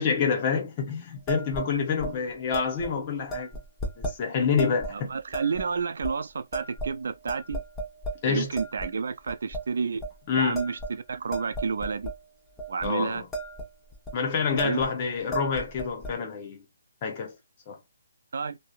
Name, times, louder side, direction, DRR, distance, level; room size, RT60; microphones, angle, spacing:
voice 1, 0.0-3.5 4.0-5.1 8.2-8.5 10.3-10.6 12.8-13.3 14.1-16.6 17.0-17.4 17.7-17.8, left 6 dB, 30° left, 0.8 m, -27 dB
sound 1, 1.3-1.7 2.0-2.1 2.5-2.9 3.3-4.2 4.6-4.9 5.3-5.7 6.0-6.1 6.5-7.0 7.3-8.2 8.6-8.9 9.3-9.6 10.0-10.2 10.5-12.2 12.6-12.9 13.1-13.7 13.9-14.1 14.6-14.9 15.2-16.1, right 2 dB, 5° left, 1.0 m, -34 dB
voice 2, 5.1-7.6 8.3-10.0 10.3-10.8 11.1-12.1 12.7-13.2 14.6-14.8 18.3-18.6, right 5 dB, 65° right, 0.3 m, -30 dB
2.6 x 2.0 x 2.4 m
hypercardioid pair, 150°, 0 cm